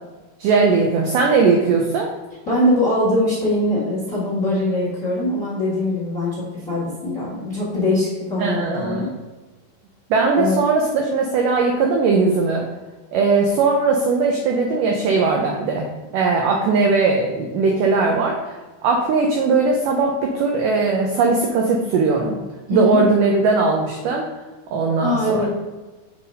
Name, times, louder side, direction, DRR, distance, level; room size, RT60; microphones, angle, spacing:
voice 1, 0.4-2.1 8.4-9.1 10.1-12.7 13.1-15.9 16.1-22.4 22.7-24.3 24.7-25.5, right 4 dB, 85° right, 1 dB, 1.9 m, -19 dB
voice 2, 2.4-9.1 10.3-10.6 22.7-23.0 25.0-25.5, left 1 dB, 35° left, -8 dB, 1.4 m, -22 dB
6.5 x 2.9 x 5.3 m, 1.2 s
omnidirectional pair, 4.6 m